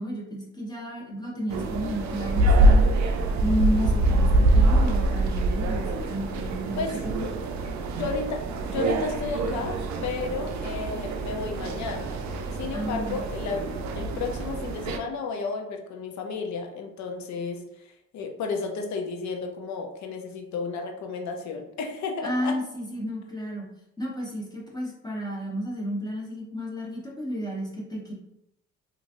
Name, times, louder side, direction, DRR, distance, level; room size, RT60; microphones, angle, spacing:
voice 1, 0.0-2.8 3.4-6.8 7.2-7.3 12.7-13.2 22.2-23.7 24.0-28.1, equal, 15° left, -4 dB, 1.0 m, -32 dB
sound 1, 1.5-15.0, right 2 dB, 65° right, 0.5 m, -24 dB
voice 2, 7.9-22.6, left 4 dB, 70° left, 3 dB, 0.6 m, -33 dB
3.0 x 2.6 x 2.5 m, 0.83 s
cardioid pair, 90°, 30 cm